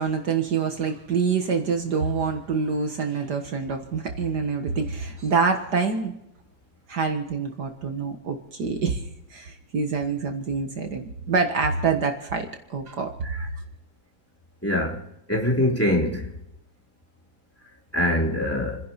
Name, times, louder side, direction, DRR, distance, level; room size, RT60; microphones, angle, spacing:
voice 1, 0.0-6.1 6.9-9.0 9.3-13.1, right 5 dB, 60° right, 2.0 m, -26 dB
voice 2, 14.6-15.0 15.3-16.3 17.9-18.8, left 1 dB, 5° left, 3.0 m, -23 dB
30.0 x 10.5 x 4.2 m
omnidirectional pair, 2.1 m